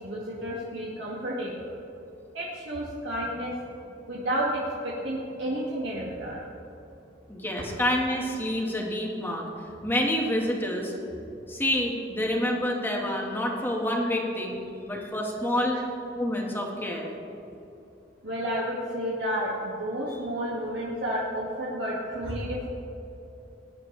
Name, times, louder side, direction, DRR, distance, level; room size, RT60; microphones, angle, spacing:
voice 1, 0.0-1.7 2.3-3.5 4.1-6.4 15.7-15.8 18.2-22.7, equal, 75° right, -6 dB, 2.1 m, -31 dB
voice 2, 7.3-9.5 9.8-10.9 11.5-14.6 14.9-15.8 16.1-17.1, left 1 dB, 10° left, -1 dB, 1.7 m, -28 dB
20.0 x 10.0 x 3.4 m, 2.8 s
head